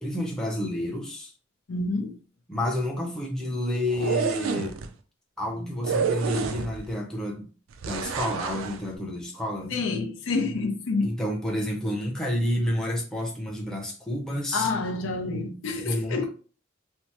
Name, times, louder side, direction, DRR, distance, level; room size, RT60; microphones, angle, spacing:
voice 1, 0.0-1.3 2.5-4.8 5.4-7.5 7.8-9.7 11.0-14.7 15.8-16.3, left 1 dB, 5° left, 0.6 m, -29 dB
voice 2, 1.7-2.2 9.7-11.1 14.5-16.3, left 3 dB, 75° left, 0.5 m, -28 dB
sound 1, 3.9-4.9 5.8-6.9 7.8-8.8, right 6 dB, 85° right, 0.4 m, -29 dB
3.2 x 2.0 x 2.8 m
head